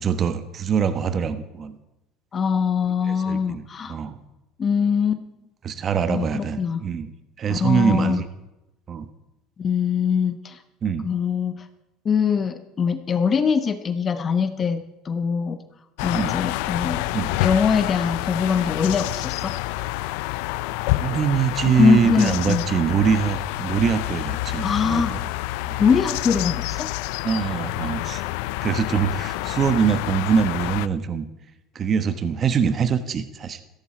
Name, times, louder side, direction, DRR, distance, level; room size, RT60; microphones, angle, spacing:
voice 1, 0.0-1.8 3.0-4.2 5.6-7.1 7.4-8.3 8.9-9.1 10.8-11.1 16.1-16.3 17.1-17.3 21.0-25.2 25.6-25.8 27.2-28.2 28.6-31.2 31.7-33.6, right 7 dB, 40° right, 11 dB, 1.1 m, -23 dB
voice 2, 2.3-4.0 4.6-5.2 6.1-6.8 7.5-8.2 9.6-10.6 11.0-11.5 12.0-15.6 16.0-17.0 17.4-19.5 21.6-22.6 24.6-25.2 25.8-26.9, left 6 dB, 35° left, 10 dB, 1.1 m, -22 dB
sound 1, 16.0-30.9, left 18 dB, 80° left, 0.5 m, -28 dB
16.0 x 14.0 x 4.4 m, 0.97 s
supercardioid pair, 105°, 0 cm